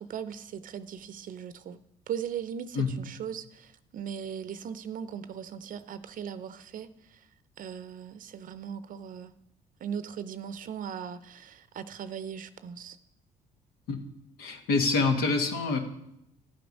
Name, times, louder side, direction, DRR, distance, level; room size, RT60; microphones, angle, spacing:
voice 1, 0.0-1.8 2.1-7.3 7.6-9.3 9.8-13.0, right 8 dB, 60° right, 0.6 m, -38 dB
voice 2, 14.4-15.8, left 4 dB, 80° left, 1.5 m, -26 dB
12.0 x 7.9 x 5.3 m
supercardioid pair, 75°, 16 cm